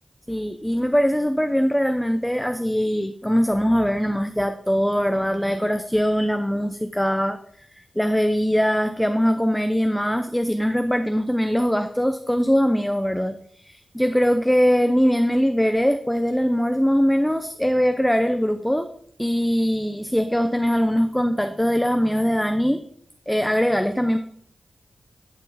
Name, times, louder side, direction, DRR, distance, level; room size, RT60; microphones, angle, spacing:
voice 1, 0.3-7.4 7.7-18.9 19.2-22.8 23.3-24.2, equal, 5° left, 7 dB, 0.6 m, -21 dB
11.0 x 4.5 x 4.1 m, 0.65 s
cardioid pair, 50°, 0 cm